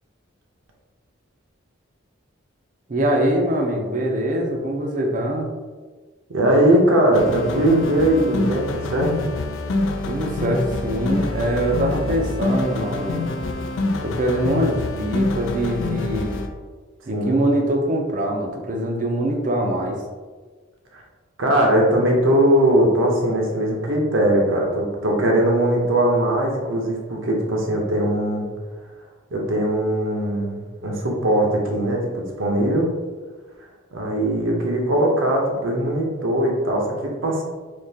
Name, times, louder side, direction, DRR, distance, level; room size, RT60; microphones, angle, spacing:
voice 1, 2.9-5.5 10.1-13.2 14.0-16.4 17.1-20.0, right 1 dB, 40° right, 1 dB, 0.5 m, -23 dB
voice 2, 6.3-9.3 17.1-17.4 20.9-21.0 21.4-28.5 29.3-32.9 33.9-37.4, right 1 dB, 75° right, 0 dB, 0.8 m, -20 dB
sound 1, 7.1-16.5, left 2 dB, 70° left, 0.4 m, -26 dB
3.6 x 2.9 x 2.8 m, 1.4 s
head